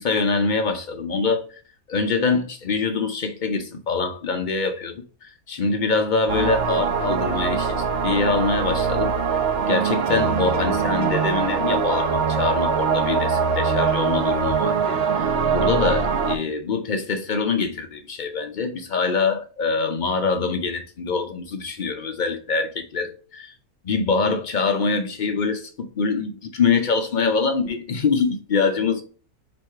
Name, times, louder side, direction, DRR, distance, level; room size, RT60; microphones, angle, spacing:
voice 1, 0.0-1.5 1.9-7.8 8.0-9.4 9.7-23.5 23.8-29.0, left 4 dB, 65° left, 0.4 m, -24 dB
sound 1, 6.3-16.4, right 6 dB, 55° right, 0.7 m, -22 dB
4.7 x 3.1 x 3.2 m
omnidirectional pair, 1.6 m